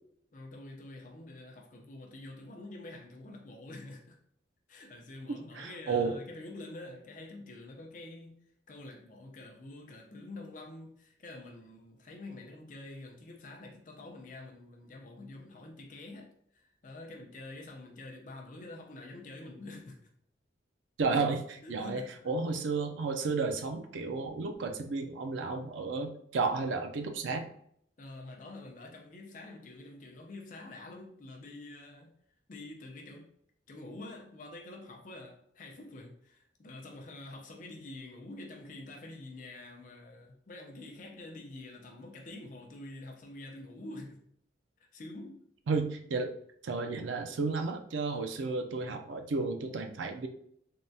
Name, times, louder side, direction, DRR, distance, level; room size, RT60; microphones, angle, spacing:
voice 1, 0.3-4.2 4.7-8.4 8.7-20.1 21.6-22.3 28.0-32.1 32.5-33.3 33.7-44.2 44.8-45.4, left 2 dB, 40° left, 1 dB, 0.5 m, -47 dB
voice 2, 5.3-6.2 21.0-27.4 45.7-46.3 46.6-50.3, right 4 dB, 85° right, 5 dB, 0.4 m, -32 dB
3.5 x 2.1 x 2.6 m, 0.67 s
head